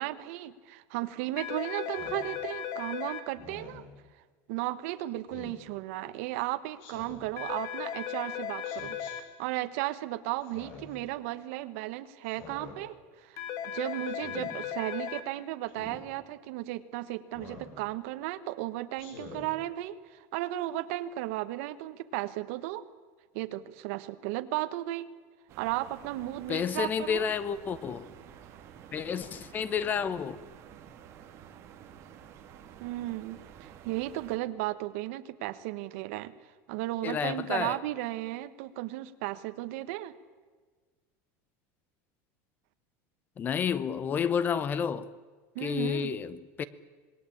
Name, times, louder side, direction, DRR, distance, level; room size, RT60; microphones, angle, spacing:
voice 1, 0.0-3.8 4.5-9.0 9.4-22.9 23.3-25.1 25.6-27.2 32.8-36.3 36.7-40.1 45.5-46.1, right 16 dB, 65° right, 1.3 m, -35 dB
sound 1, 1.4-3.2 7.4-9.2 13.4-15.2, left 9 dB, 45° left, 1.9 m, -36 dB
Speech synthesizer, 1.9-2.2 3.3-3.9 5.3-5.6 6.8-7.3 8.6-9.1 10.4-11.0 12.2-12.8 14.1-14.5 15.7-16.0 17.3-17.7 19.0-19.5, left 3 dB, 65° left, 7.1 m, -47 dB
sound 2, 25.5-34.4, right 9 dB, 35° right, 2.6 m, -51 dB
voice 2, 26.5-28.1 28.9-30.4 37.0-37.8 43.4-45.1 45.6-46.6, left 7 dB, 25° left, 0.9 m, -30 dB
26.5 x 20.5 x 8.6 m
cardioid pair, 170°, 8 cm